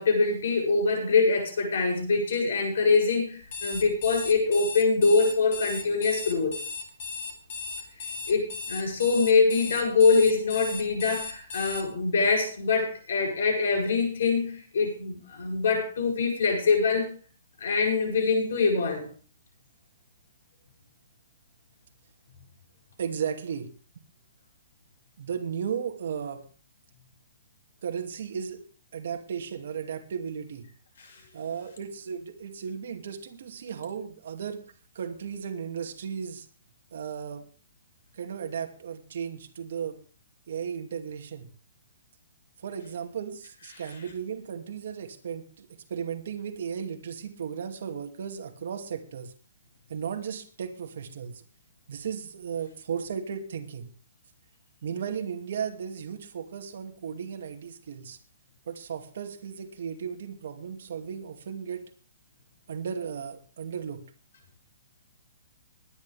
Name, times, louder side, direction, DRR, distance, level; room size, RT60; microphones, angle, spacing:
voice 1, 0.0-6.6 8.3-17.1 17.6-19.1 31.0-31.2, left 4 dB, 60° left, 3 dB, 7.6 m, -24 dB
Alarm, 3.4-11.8, left 5 dB, 40° left, 3.0 m, -36 dB
voice 2, 23.0-23.7 25.2-26.4 27.8-28.6 28.9-30.6 31.3-34.6 34.9-36.5 36.9-37.4 38.2-40.0 40.5-41.5 42.6-49.3 49.9-51.4 51.9-53.9 54.8-58.2 58.7-61.8 62.7-64.0, right 7 dB, 50° right, 5 dB, 2.5 m, -35 dB
21.0 x 10.5 x 3.5 m, 0.40 s
hypercardioid pair, 175°, 0 cm